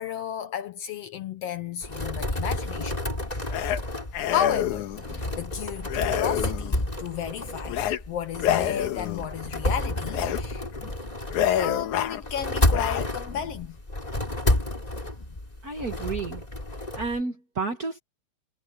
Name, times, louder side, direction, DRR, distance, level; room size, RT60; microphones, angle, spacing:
voice 1, 0.0-3.0 4.3-10.7 11.5-13.8, left 9 dB, 70° left, 1.6 m, -33 dB
sound 1, 1.8-17.2, left 1 dB, 15° left, 3.0 m, -30 dB
sound 2, 3.5-3.8 4.1-5.0 5.9-6.8 7.7-8.0 8.4-9.3 10.1-10.4 10.8-10.9 11.3-12.2 12.7-13.1, left 10 dB, 85° left, 2.6 m, -27 dB
voice 2, 15.6-16.4 16.9-18.0, right 4 dB, 40° right, 1.4 m, -31 dB
omnidirectional pair, 3.4 m